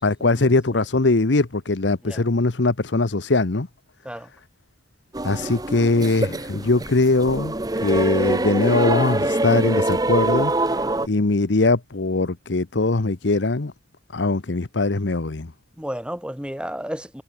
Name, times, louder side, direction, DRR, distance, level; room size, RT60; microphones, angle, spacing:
voice 1, 0.0-3.7 5.2-10.5 11.0-13.7 14.1-15.5, left 3 dB, 90° left, 1.0 m, -21 dB
sound 1, 5.1-11.1, right 2 dB, 20° right, 1.1 m, -24 dB
voice 2, 10.6-11.0 15.8-17.2, equal, 5° right, 7.1 m, -33 dB
head